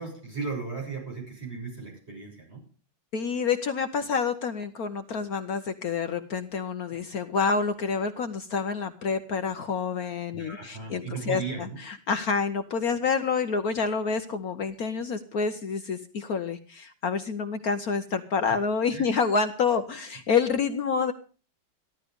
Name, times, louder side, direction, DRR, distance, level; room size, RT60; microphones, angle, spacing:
voice 1, 0.0-2.6 10.3-11.8 18.9-19.0, right 4 dB, 35° right, -1 dB, 7.2 m, -36 dB
voice 2, 3.1-21.1, left 5 dB, 60° left, 8 dB, 1.3 m, -28 dB
14.5 x 12.5 x 5.2 m, 0.37 s
omnidirectional pair, 1.9 m